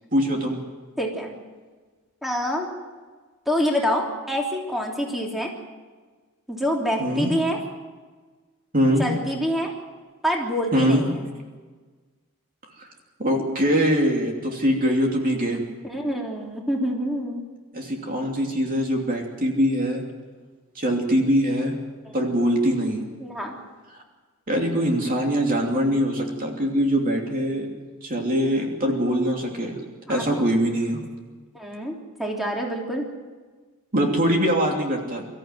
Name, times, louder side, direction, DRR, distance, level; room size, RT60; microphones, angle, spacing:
voice 1, 0.1-0.6 7.0-7.3 8.7-9.1 10.7-11.1 12.8-12.9 13.2-15.6 17.7-20.0 20.7-21.8 22.1-23.0 24.5-27.7 28.0-29.8 30.1-31.0 33.9-35.2, equal, 40° right, 1 dB, 2.9 m, -22 dB
voice 2, 1.0-1.3 2.2-2.7 3.4-5.5 6.5-7.6 9.0-9.7 10.2-11.2 15.8-17.4 23.2-23.5 30.1-30.4 31.5-31.9 32.2-33.1, equal, ahead, -1 dB, 3.3 m, -26 dB
24.5 x 14.5 x 9.3 m, 1.4 s
head